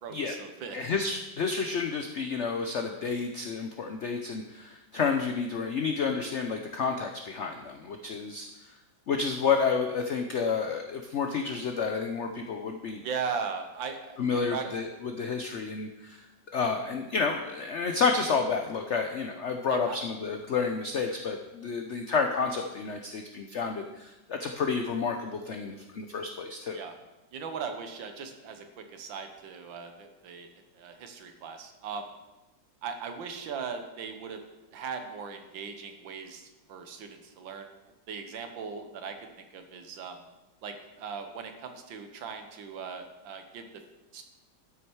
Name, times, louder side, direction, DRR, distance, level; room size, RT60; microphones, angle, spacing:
voice 1, 0.0-0.9 13.0-14.7 19.7-20.0 26.7-27.0 27.3-32.1 32.8-34.4 34.7-37.8 38.1-40.2 40.6-43.8 44.1-44.2, right 6 dB, 85° right, 6 dB, 1.8 m, -39 dB
voice 2, 0.7-8.5 9.1-13.0 14.2-16.2 16.5-26.8, left 5 dB, 75° left, 4 dB, 0.6 m, -30 dB
12.5 x 6.3 x 4.6 m, 1.0 s
omnidirectional pair, 2.1 m